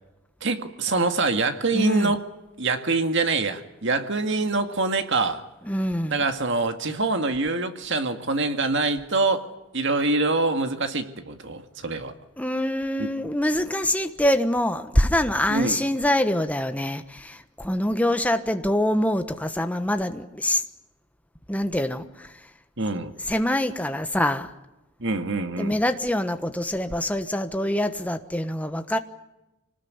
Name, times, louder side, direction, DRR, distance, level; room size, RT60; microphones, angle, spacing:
voice 1, 0.4-2.2 2.6-5.4 6.1-9.5 9.7-12.1 13.0-13.1 15.5-15.8 22.8-23.1 25.0-25.8, right 3 dB, 60° right, 7 dB, 2.0 m, -25 dB
voice 2, 1.7-2.1 5.7-6.2 12.4-20.6 21.5-22.3 23.3-24.5 25.6-29.0, left 1 dB, 5° left, 8 dB, 1.2 m, -25 dB
26.0 x 19.5 x 9.6 m, 0.98 s
head